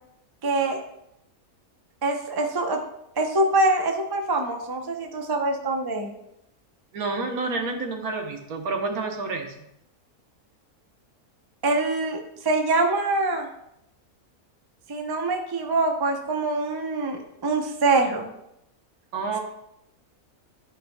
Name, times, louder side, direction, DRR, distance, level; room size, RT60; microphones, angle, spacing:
voice 1, 0.4-0.8 2.0-2.8 3.2-6.1 11.6-13.5 14.9-18.3, right 2 dB, 30° right, 3 dB, 0.4 m, -24 dB
voice 2, 6.9-9.5 19.1-19.4, right 3 dB, 75° right, 4 dB, 1.4 m, -29 dB
11.5 x 5.1 x 2.2 m, 0.80 s
omnidirectional pair, 1.6 m